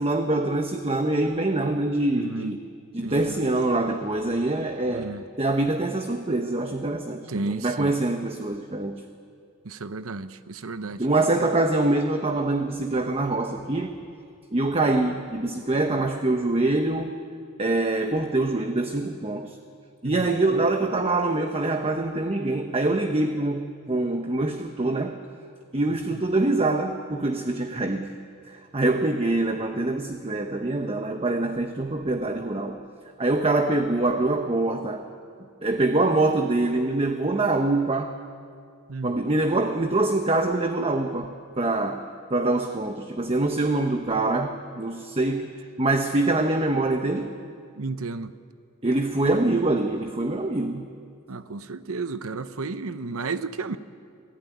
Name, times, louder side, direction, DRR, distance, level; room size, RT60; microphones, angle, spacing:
voice 1, 0.0-2.6 2.9-9.0 11.0-14.0 14.5-17.2 17.6-19.6 20.0-25.2 25.7-28.2 28.7-32.8 33.2-35.1 35.6-38.2 39.0-47.4 48.8-50.9, right 2 dB, 25° right, 1.0 m, -25 dB
voice 2, 2.1-2.5 3.0-3.4 4.9-5.2 7.3-7.9 9.6-11.1 20.0-20.3 26.1-26.2 38.9-39.2 47.8-48.3 51.3-53.8, right 3 dB, 65° right, 0.8 m, -33 dB
26.0 x 15.5 x 9.5 m
head